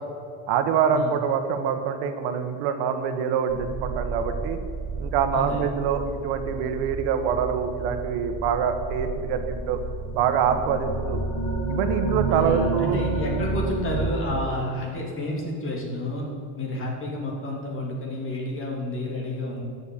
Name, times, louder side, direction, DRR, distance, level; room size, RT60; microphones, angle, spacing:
voice 1, 0.5-4.6 5.0-9.8 10.1-11.2 11.7-13.0, right 7 dB, 85° right, 7 dB, 1.3 m, -25 dB
sound 1, 3.5-14.4, right 3 dB, 75° left, 3.0 m, -30 dB
voice 2, 12.3-16.3 16.6-19.6, left 1 dB, 30° left, -1 dB, 3.1 m, -30 dB
11.0 x 6.8 x 8.5 m, 2.4 s
cardioid pair, 140°, 40 cm